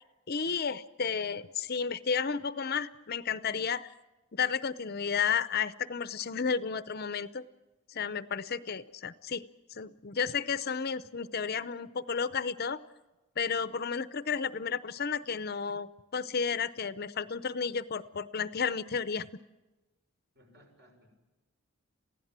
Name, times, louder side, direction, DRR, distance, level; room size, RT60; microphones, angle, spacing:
voice 1, 0.3-3.9 4.3-7.4 7.9-9.4 9.7-12.8 13.4-19.3, left 6 dB, 45° left, 14 dB, 0.7 m, -32 dB
voice 2, 20.3-21.1, equal, 50° right, 2 dB, 6.1 m, -60 dB
27.5 x 16.5 x 7.5 m, 1.1 s
head